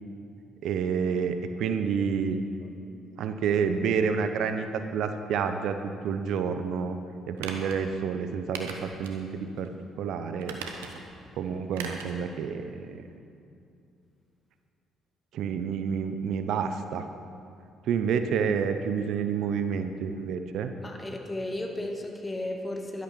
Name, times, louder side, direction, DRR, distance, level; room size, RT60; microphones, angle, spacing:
voice 1, 0.6-2.4 3.2-7.0 7.3-9.7 10.0-10.6 11.4-13.0 15.3-17.1 17.9-20.7, right 6 dB, 70° right, 8 dB, 0.7 m, -29 dB
sound 1, 7.4-7.8 8.5-9.2 9.6-9.7 10.4-11.1 11.7-12.2 12.5-12.6, right 5 dB, 85° right, 1.1 m, -39 dB
voice 2, 20.8-23.0, left 1 dB, 20° left, 2 dB, 2.2 m, -34 dB
12.0 x 11.5 x 6.1 m, 2.6 s
hypercardioid pair, 50°, 0 cm